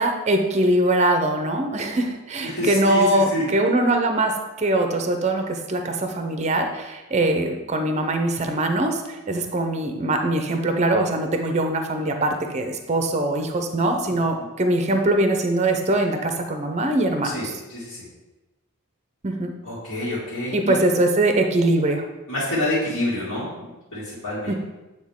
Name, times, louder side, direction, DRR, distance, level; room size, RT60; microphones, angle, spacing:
voice 1, 0.0-17.5 19.2-19.5 20.5-22.0 24.5-24.6, right 1 dB, 30° right, 5 dB, 0.6 m, -22 dB
voice 2, 2.4-3.5 17.3-17.4 17.7-18.0 19.6-20.8 22.3-24.5, left 1 dB, 70° left, -10 dB, 2.3 m, -27 dB
8.6 x 3.9 x 3.6 m, 1.1 s
head